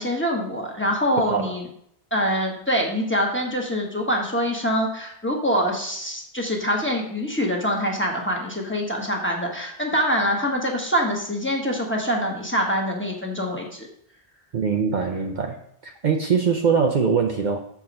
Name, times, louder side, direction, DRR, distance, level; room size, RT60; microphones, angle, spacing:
voice 1, 0.0-1.6 2.1-13.9, equal, 10° left, -1 dB, 1.2 m, -24 dB
voice 2, 14.5-15.6 15.8-17.6, right 6 dB, 55° right, 3 dB, 0.7 m, -22 dB
7.3 x 4.8 x 5.2 m, 0.69 s
omnidirectional pair, 1.0 m